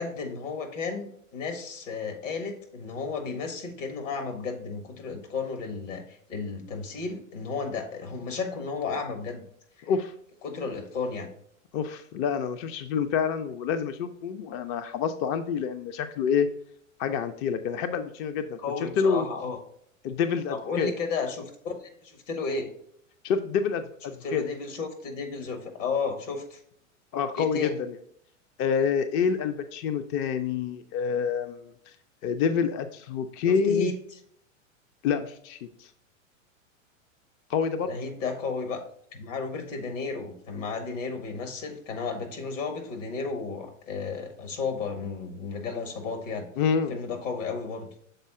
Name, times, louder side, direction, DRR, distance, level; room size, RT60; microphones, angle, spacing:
voice 1, 0.0-9.4 9.8-9.9 10.4-11.3 18.6-19.6 20.5-22.7 24.2-26.6 27.4-27.8 33.5-33.9 37.8-38.8 39.1-46.5 46.9-47.9, left 4 dB, 70° left, 5 dB, 1.7 m, -33 dB
voice 2, 9.8-10.1 11.7-16.5 17.0-18.6 19.0-19.2 20.0-20.9 23.2-24.4 27.1-27.9 28.6-31.9 32.2-33.9 35.0-35.9 37.5-37.9 46.6-47.0, left 6 dB, 30° left, 9 dB, 0.4 m, -27 dB
6.7 x 4.0 x 3.6 m, 0.68 s
hypercardioid pair, 105°, 39 cm